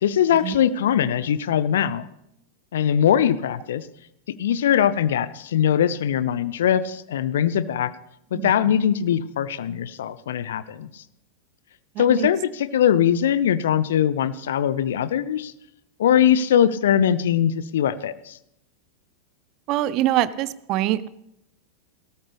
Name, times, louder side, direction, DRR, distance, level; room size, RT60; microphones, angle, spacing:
voice 1, 0.0-2.1 2.7-3.9 4.4-7.9 8.3-11.0 12.0-15.5 16.0-18.4, left 9 dB, 60° left, 16 dB, 0.6 m, -21 dB
voice 2, 11.9-12.3 19.7-21.1, right 14 dB, 40° right, 18 dB, 0.6 m, -24 dB
18.0 x 13.0 x 3.4 m, 0.81 s
figure-of-eight pair, 90°, 0 cm